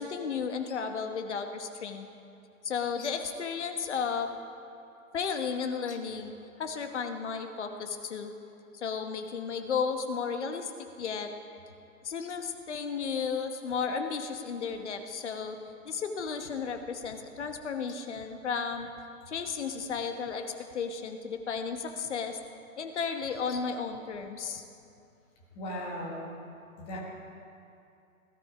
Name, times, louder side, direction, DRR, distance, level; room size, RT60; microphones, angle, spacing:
voice 1, 0.0-2.1 2.6-4.3 5.1-8.3 8.7-10.7 11.0-11.3 12.0-15.6 15.8-18.9 19.3-20.5 20.7-22.4 22.8-24.6, left 6 dB, 50° left, 6 dB, 1.2 m, -33 dB
voice 2, 25.5-26.3 26.8-27.0, equal, 10° left, -2 dB, 1.3 m, -37 dB
18.0 x 12.5 x 5.0 m, 2.7 s
hypercardioid pair, 165°, 44 cm